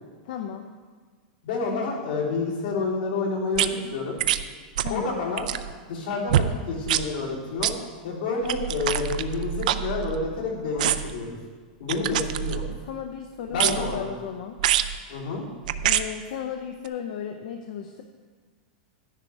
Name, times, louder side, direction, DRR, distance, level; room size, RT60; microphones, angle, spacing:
voice 1, 0.2-0.7 4.8-5.2 12.1-12.3 12.8-14.6 15.8-18.0, left 8 dB, 55° left, 5 dB, 0.6 m, -35 dB
voice 2, 1.4-4.2 4.9-5.5 5.9-7.7 8.0-11.4 11.8-12.6 13.5-14.1 15.1-15.4, left 3 dB, 75° left, -5 dB, 3.5 m, -29 dB
sound 1, 3.5-3.7 4.2-4.4 4.8-5.0 5.3-5.7 6.3-6.5 6.9-7.1 7.6-7.7 8.4-10.4 10.8-11.2 11.9-12.8 13.5-14.0 14.6-14.9 15.6-16.0 16.8-16.9, right 11 dB, 60° right, 0.4 m, -25 dB
11.0 x 10.0 x 3.5 m, 1.5 s
supercardioid pair, 170°, 5 cm